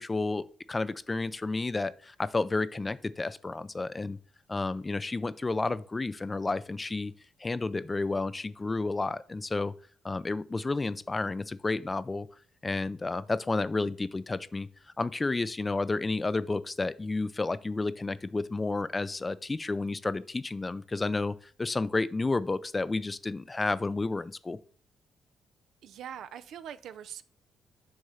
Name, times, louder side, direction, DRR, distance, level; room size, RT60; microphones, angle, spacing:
voice 1, 0.0-4.2 4.5-7.1 7.4-9.7 10.0-12.3 12.6-14.7 15.0-24.6, left 3 dB, 25° left, 0.4 m, -31 dB
voice 2, 25.8-27.2, right 9 dB, 75° right, 0.5 m, -42 dB
6.4 x 3.6 x 5.6 m
cardioid pair, 90°, 0 cm